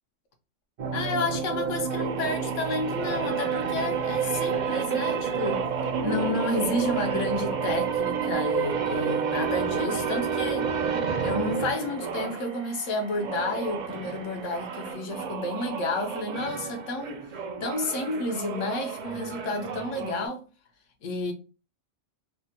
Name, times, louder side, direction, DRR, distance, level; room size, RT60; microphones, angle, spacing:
sound 1, 0.8-12.5 13.1-20.3, right 6 dB, 60° right, 0.5 m, -30 dB
voice 1, 0.9-5.6 6.0-10.7 11.2-17.2 17.6-20.4 21.0-21.3, left 2 dB, 85° left, 1.1 m, -31 dB
sound 2, 1.9-14.9, right 5 dB, 75° right, 0.9 m, -47 dB
3.3 x 2.2 x 2.7 m
omnidirectional pair, 1.3 m